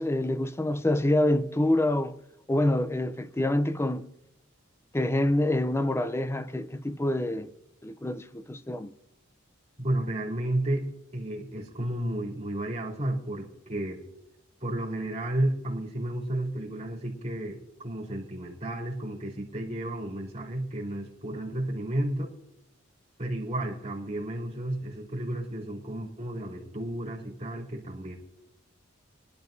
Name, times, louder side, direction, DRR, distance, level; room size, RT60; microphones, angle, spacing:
voice 1, 0.0-2.1 2.5-4.1 4.9-7.5 7.8-8.9, left 1 dB, 15° left, 0.5 m, -26 dB
voice 2, 9.8-10.8 11.1-14.0 14.6-22.3 23.2-28.2, right 1 dB, 30° right, 3.2 m, -32 dB
22.5 x 12.0 x 2.7 m
head